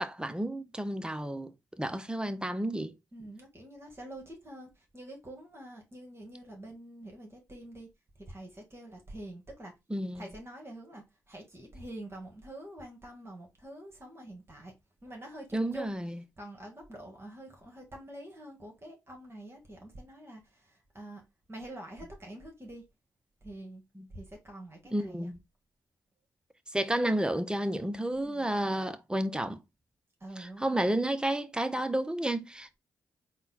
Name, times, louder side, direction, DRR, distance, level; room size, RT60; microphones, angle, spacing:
voice 1, 0.0-3.0 9.9-10.3 15.5-16.2 24.0-24.1 24.9-25.4 26.7-29.6 30.4-32.8, right 1 dB, 10° right, 0.7 m, -31 dB
voice 2, 3.1-7.9 8.2-9.7 10.1-14.7 15.0-15.9 16.4-21.2 21.5-22.8 23.4-23.8 24.1-25.3 28.2-28.5 30.2-30.9, right 1 dB, 30° right, 1.7 m, -46 dB
4.0 x 2.2 x 4.1 m
hypercardioid pair, 40°, 9 cm